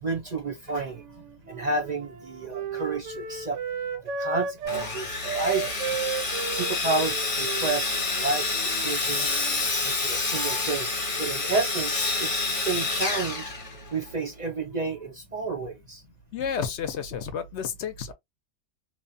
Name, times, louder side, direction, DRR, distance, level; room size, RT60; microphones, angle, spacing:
voice 1, 0.0-3.6 4.2-5.8 6.5-9.4 9.8-10.9 11.2-13.5 13.9-16.0, right 3 dB, 45° right, 0.6 m, -31 dB
Wind instrument woodwind instrument, 0.9-4.9 5.2-9.7, right 5 dB, 85° right, 0.9 m, -34 dB
Sawing, 4.7-14.1, left 3 dB, 35° left, 0.6 m, -28 dB
voice 2, 16.3-18.1, left 7 dB, 70° left, 0.9 m, -31 dB
2.9 x 2.1 x 2.5 m
omnidirectional pair, 1.3 m